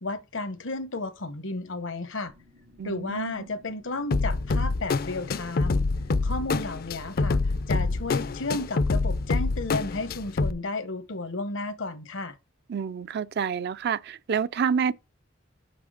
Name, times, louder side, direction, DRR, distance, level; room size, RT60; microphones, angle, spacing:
voice 1, 0.0-2.3 2.8-5.9 6.2-7.4 7.7-12.4, left 2 dB, 80° left, 1.1 m, -33 dB
sound 1, 2.3-8.6, left 3 dB, 85° right, 2.8 m, -56 dB
voice 2, 2.8-3.5 12.7-14.9, right 7 dB, 55° right, 0.4 m, -28 dB
sound 2, 4.1-10.5, left 3 dB, 50° left, 0.4 m, -26 dB
6.4 x 6.0 x 6.4 m
head